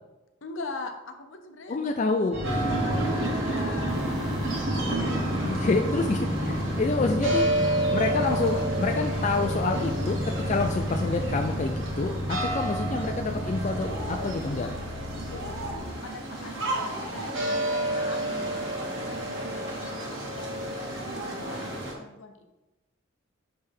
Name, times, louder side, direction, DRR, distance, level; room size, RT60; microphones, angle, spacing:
voice 1, 0.4-1.8 2.3-4.0 15.3-22.4, left 3 dB, 70° left, 5 dB, 0.7 m, -42 dB
voice 2, 1.7-2.4 5.4-14.7, left 3 dB, 35° left, 3 dB, 0.4 m, -28 dB
sound 1, 2.3-5.3, equal, 30° right, 1.3 m, -36 dB
sound 2, 2.4-21.9, right 1 dB, 70° right, 1.4 m, -30 dB
sound 3, 3.7-15.8, equal, ahead, 1.4 m, -32 dB
10.0 x 3.4 x 3.5 m, 1.0 s
head